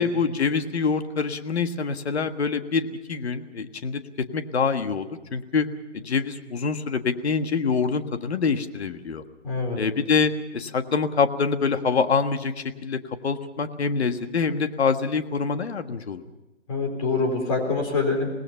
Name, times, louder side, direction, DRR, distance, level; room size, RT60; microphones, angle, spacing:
voice 1, 0.0-5.7 5.9-9.2 9.8-16.2, left 5 dB, 60° left, 8 dB, 1.6 m, -25 dB
voice 2, 9.4-9.8 16.7-18.3, left 3 dB, 30° left, 2 dB, 3.9 m, -25 dB
25.5 x 19.0 x 5.7 m, 1.0 s
hypercardioid pair, 170°, 37 cm